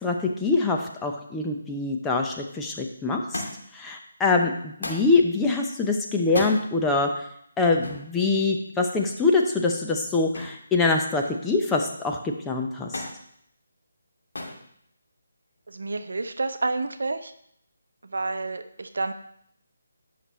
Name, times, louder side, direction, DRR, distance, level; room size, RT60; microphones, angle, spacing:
voice 1, 0.0-3.4 3.7-7.2 7.6-13.0, left 3 dB, 10° left, 1 dB, 0.7 m, -24 dB
Thump thud, 3.3-3.8 4.8-5.1 6.2-6.6 7.8-8.1 10.3-10.7 11.0-11.6 12.9-13.2 14.3-14.6 15.6-16.0 17.0-17.1, left 2 dB, 75° left, 2.6 m, -34 dB
voice 2, 15.7-17.3 18.0-19.1, right 3 dB, 70° right, 9 dB, 0.7 m, -29 dB
11.0 x 6.0 x 3.2 m, 0.70 s
figure-of-eight pair, 155°, 0 cm